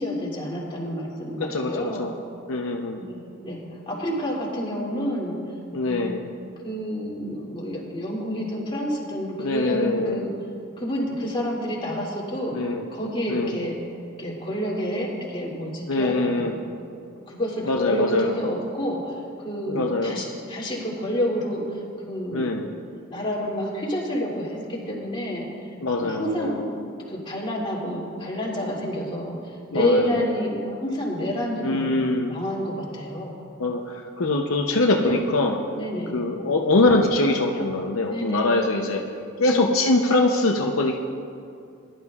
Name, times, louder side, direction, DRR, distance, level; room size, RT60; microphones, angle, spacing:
voice 1, 0.0-2.1 2.9-5.3 5.8-6.2 6.6-10.3 10.8-12.6 12.9-13.8 14.2-16.5 17.3-19.1 19.4-22.5 23.1-25.5 26.0-31.9 32.3-33.3 35.0-35.2 35.7-36.2 38.1-38.5 39.5-39.8, equal, 25° left, -5 dB, 2.7 m, -29 dB
voice 2, 1.4-2.1 2.5-3.0 5.7-6.2 9.4-10.2 12.5-12.9 13.3-13.6 15.9-16.6 17.6-18.4 19.7-20.2 22.3-22.7 25.8-26.6 29.7-30.3 31.6-32.3 33.6-35.6 36.1-39.0 39.4-41.0, left 2 dB, 75° left, 1 dB, 0.7 m, -23 dB
20.5 x 11.5 x 2.4 m, 2.4 s
head